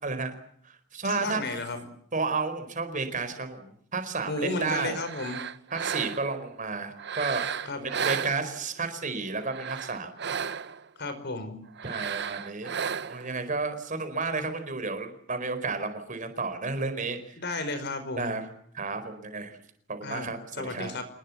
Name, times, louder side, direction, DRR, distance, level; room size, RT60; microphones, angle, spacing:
voice 1, 0.0-0.3 0.6-1.6 2.1-5.0 5.7-7.4 7.8-10.1 11.8-12.7 13.0-17.3 18.2-18.4 18.7-19.6 19.9-20.9, right 4 dB, 40° right, 9 dB, 4.6 m, -32 dB
voice 2, 1.0-1.8 4.3-5.5 7.6-7.9 11.0-11.6 17.4-18.4 20.0-20.3 20.6-21.0, left 2 dB, 55° left, 10 dB, 4.9 m, -33 dB
sound 1, 4.9-6.4 7.0-8.8 9.4-10.9 11.8-13.3, right 7 dB, 55° right, 1.0 m, -34 dB
27.0 x 20.5 x 7.3 m, 0.64 s
head